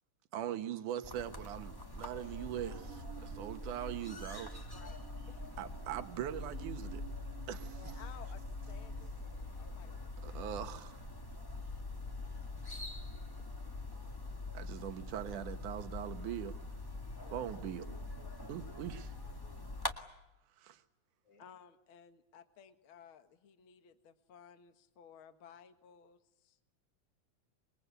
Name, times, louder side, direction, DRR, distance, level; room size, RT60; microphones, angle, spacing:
voice 1, 0.3-4.6 5.6-7.0 7.5-7.8 10.2-11.0 14.5-16.6 17.3-17.9 18.5-19.1 20.6-20.8, right 10 dB, 80° right, 9 dB, 2.9 m, -41 dB
sound 1, 1.0-19.9, left 2 dB, 15° left, 0.9 m, -44 dB
Musical instrument, 2.2-9.1, right 15 dB, 40° right, 1.3 m, -55 dB
voice 2, 4.7-5.4 7.6-9.1 9.5-10.4 17.2-17.4 21.4-26.6, left 8 dB, 50° left, 9 dB, 2.1 m, -57 dB
voice 3, 17.4-18.3 18.6-19.1 19.4-19.8 21.3-21.4, left 2 dB, 70° left, 6 dB, 5.4 m, -62 dB
27.0 x 22.5 x 8.3 m, 0.89 s
omnidirectional pair, 3.5 m